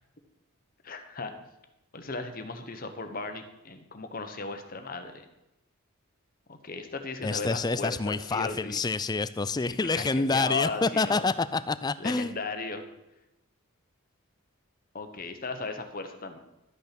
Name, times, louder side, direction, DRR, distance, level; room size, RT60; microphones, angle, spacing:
voice 1, 0.8-1.3 1.9-5.3 6.5-8.8 9.7-11.3 12.0-12.8 14.9-16.4, left 4 dB, 40° left, 7 dB, 1.1 m, -36 dB
voice 2, 7.2-12.3, left 3 dB, 20° left, 15 dB, 0.4 m, -27 dB
12.5 x 8.7 x 6.0 m, 0.95 s
head